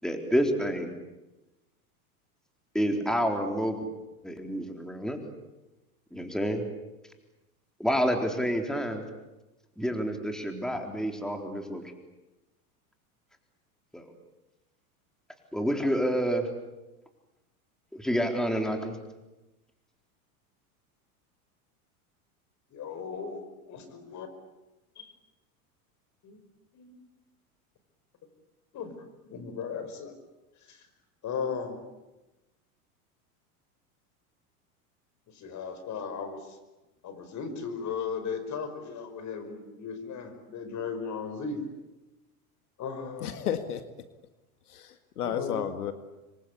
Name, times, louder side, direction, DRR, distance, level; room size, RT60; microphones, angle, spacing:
voice 1, 0.0-0.9 2.7-3.8 4.2-5.2 6.1-6.6 7.8-9.0 9.8-11.8 13.9-14.1 15.5-16.5 17.9-19.0, equal, ahead, 4 dB, 4.0 m, -28 dB
voice 2, 22.7-23.4 23.7-24.3 25.0-25.1 26.2-26.4 26.7-27.0 28.7-29.0 29.3-30.1 30.6-30.9 31.2-31.8 35.3-36.6 37.0-41.6 42.8-43.4 45.2-45.6, left 6 dB, 40° left, 9 dB, 5.5 m, -36 dB
voice 3, 43.2-43.8 44.7-45.9, left 9 dB, 85° left, 9 dB, 2.0 m, -32 dB
27.5 x 23.0 x 8.5 m, 1.0 s
hypercardioid pair, 100°, 44 cm